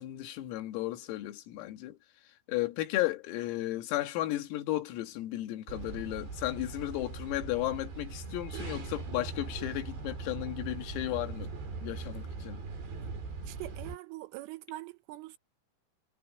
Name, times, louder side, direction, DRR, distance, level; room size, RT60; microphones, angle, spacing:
voice 1, 0.0-2.0 2.5-11.5 11.8-12.6, left 16 dB, 85° left, 4.5 m, -34 dB
sound 1, 5.7-14.0, right 4 dB, 60° right, 7.9 m, -40 dB
voice 2, 13.5-15.4, right 18 dB, 80° right, 3.2 m, -43 dB
omnidirectional pair, 5.9 m